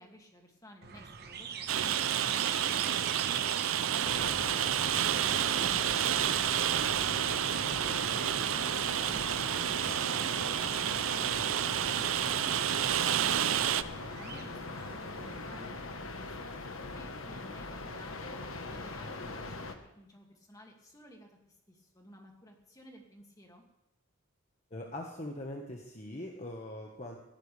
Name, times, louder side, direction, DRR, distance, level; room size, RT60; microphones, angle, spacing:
voice 1, 0.0-4.4 4.7-13.6 14.2-16.7 16.9-18.4 18.7-23.6, equal, 15° left, 1 dB, 2.4 m, -55 dB
sound 1, 0.8-15.7, right 6 dB, 50° right, 1.2 m, -46 dB
Rain, 1.7-13.8, right 10 dB, 70° right, 0.5 m, -30 dB
sound 2, 4.0-19.8, left 3 dB, 70° left, 1.4 m, -42 dB
voice 2, 24.7-27.2, left 1 dB, 35° left, 0 dB, 1.5 m, -41 dB
19.0 x 17.5 x 3.5 m, 0.85 s
head